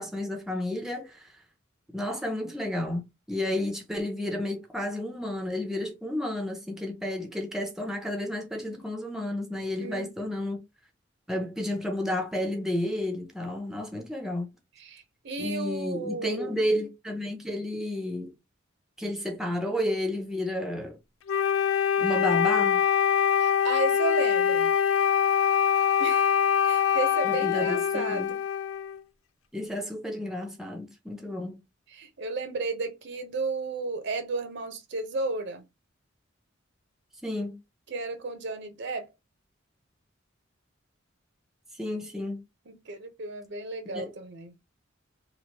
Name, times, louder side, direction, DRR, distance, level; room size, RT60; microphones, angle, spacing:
voice 1, 0.0-1.3 1.9-10.6 11.3-14.5 15.4-18.3 19.0-21.0 22.0-22.8 27.2-28.3 29.5-31.6 37.2-37.6 41.7-42.4 43.9-44.0, left 1 dB, ahead, 0.5 m, -31 dB
voice 2, 9.8-10.1 14.8-16.6 23.4-24.7 26.0-26.3 26.6-28.3 31.9-35.6 37.9-39.1 42.7-44.5, right 3 dB, 60° right, 0.7 m, -33 dB
Wind instrument woodwind instrument, 21.3-29.0, left 8 dB, 90° left, 0.4 m, -24 dB
3.0 x 2.5 x 2.8 m
head